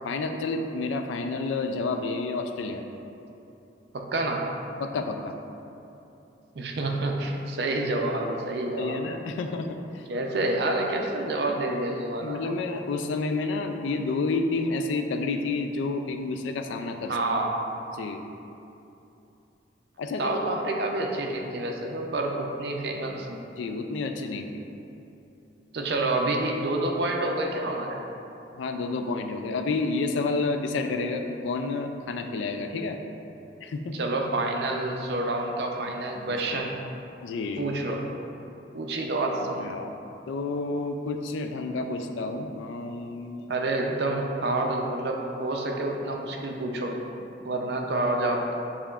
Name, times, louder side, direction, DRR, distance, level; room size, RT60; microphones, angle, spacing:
voice 1, 0.0-2.8 4.8-5.3 8.8-9.7 9.9-10.0 10.4-10.5 12.2-17.1 17.9-18.2 20.0-20.4 23.6-24.6 28.5-33.0 33.6-34.0 36.2-36.6 37.2-37.7 39.6-39.9 40.3-43.5, left 3 dB, 90° left, 6 dB, 0.3 m, -30 dB
voice 2, 3.9-4.5 6.6-9.1 10.1-12.5 17.1-17.5 20.2-23.4 25.7-28.0 33.9-36.8 37.6-38.2 38.7-39.6 43.5-47.0 47.4-48.5, right 2 dB, 60° right, 1 dB, 0.5 m, -28 dB
6.8 x 2.9 x 2.3 m, 2.8 s
head